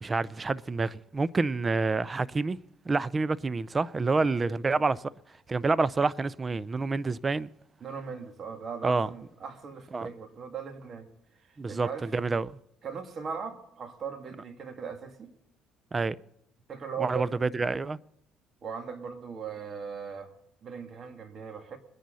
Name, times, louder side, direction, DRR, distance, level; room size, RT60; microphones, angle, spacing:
voice 1, 0.0-2.6 2.9-5.0 5.5-7.5 8.8-9.1 9.9-10.1 11.6-12.5 15.9-16.2 17.0-18.0, right 3 dB, 25° right, 0.5 m, -28 dB
voice 2, 4.2-4.6 7.8-11.1 11.3-12.1 12.8-15.3 16.7-17.3 18.6-20.3 20.6-21.8, right 6 dB, 45° right, 2.4 m, -39 dB
24.0 x 10.5 x 4.1 m
cardioid pair, 90°, 0 cm